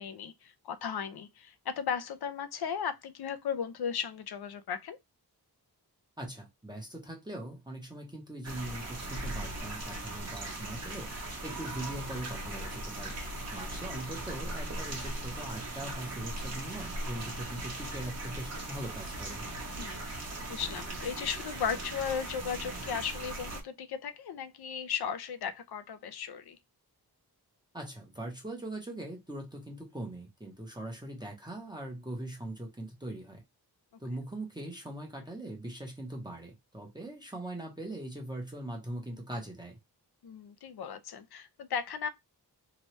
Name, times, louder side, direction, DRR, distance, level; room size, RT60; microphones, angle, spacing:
voice 1, 0.0-5.0 13.8-14.0 19.8-20.1 20.5-26.6 40.2-42.1, left 7 dB, 70° left, 0.5 m, -36 dB
voice 2, 6.2-11.1 11.4-13.1 13.5-19.4 27.7-33.4 34.0-39.8, right 1 dB, 10° right, 0.7 m, -41 dB
sound 1, 8.4-23.6, right 2 dB, 40° right, 0.8 m, -39 dB
2.9 x 2.2 x 3.0 m
wide cardioid pair, 145°, 40 cm